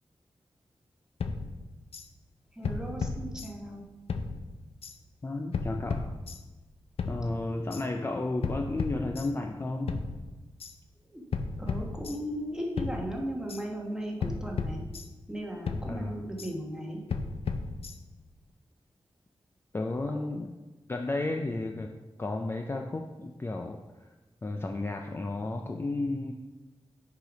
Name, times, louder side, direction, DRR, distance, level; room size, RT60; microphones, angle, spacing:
sound 1, 1.2-2.1 2.6-3.8 4.1-5.0 5.5-6.6 7.0-7.8 8.4-9.6 9.9-10.7 11.3-12.5 12.8-13.6 14.2-15.4 15.7-16.5 17.1-18.3, left 4 dB, 75° left, 0.5 m, -35 dB
voice 1, 2.5-3.8 11.1-11.2 11.6-14.8 15.3-17.0, equal, 5° right, -1 dB, 1.2 m, -36 dB
voice 2, 5.2-6.1 7.1-10.1 15.9-16.2 19.7-20.5 20.9-21.9 22.2-24.1 24.4-26.3, left 2 dB, 25° left, 3 dB, 0.4 m, -33 dB
6.6 x 5.0 x 4.9 m, 1.2 s
wide cardioid pair, 140°, 10 cm